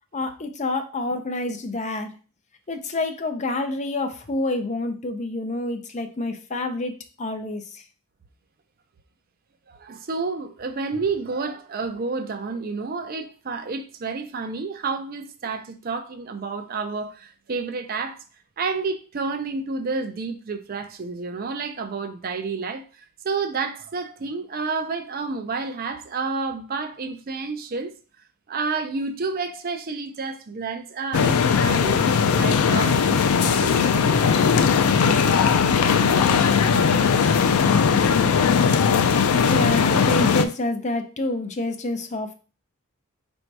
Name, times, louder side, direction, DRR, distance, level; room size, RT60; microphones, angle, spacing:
voice 1, 0.1-2.2 2.7-7.8 39.5-42.3, left 2 dB, 30° left, 0.5 m, -28 dB
voice 2, 9.7-18.2 18.6-28.0 28.5-34.3, right 4 dB, 45° right, 0.5 m, -30 dB
sound 1, 31.1-40.5, left 6 dB, 85° left, 0.4 m, -19 dB
4.2 x 2.6 x 4.5 m
head